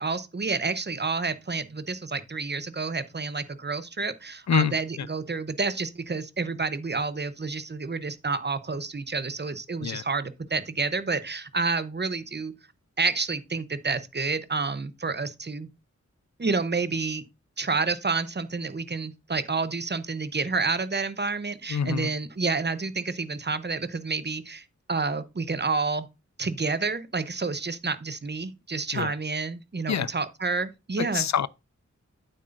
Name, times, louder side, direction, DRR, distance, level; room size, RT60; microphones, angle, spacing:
voice 1, 0.0-12.5 13.0-15.7 16.4-17.2 17.6-26.1 26.4-31.3, right 4 dB, 35° right, 0.8 m, -29 dB
voice 2, 4.5-5.1 9.8-10.0 21.7-22.1 28.9-29.1 29.9-30.1 31.0-31.5, left 8 dB, 65° left, 0.5 m, -26 dB
9.1 x 7.9 x 2.6 m
wide cardioid pair, 75°, 30 cm